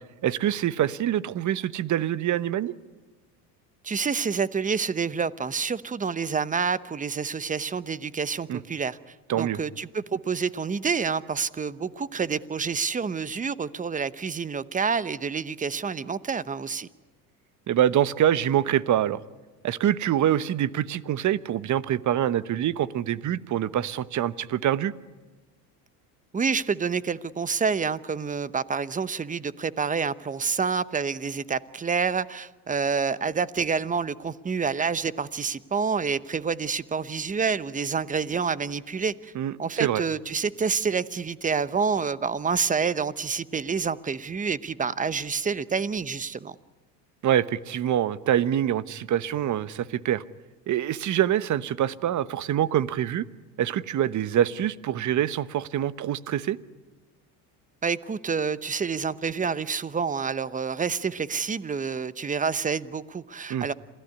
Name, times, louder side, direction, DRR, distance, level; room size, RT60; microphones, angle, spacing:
voice 1, 0.2-2.7 8.5-8.6 9.3-9.6 17.7-19.2 19.6-24.9 39.3-39.5 39.8-40.0 47.2-50.2 50.7-53.2 53.6-56.6 63.5-63.7, right 11 dB, 40° right, 1.1 m, -25 dB
voice 2, 3.8-9.0 9.3-16.9 26.3-39.3 39.6-46.5 57.8-63.7, right 5 dB, 15° right, 0.9 m, -28 dB
27.0 x 17.0 x 9.7 m
supercardioid pair, 90°, 47 cm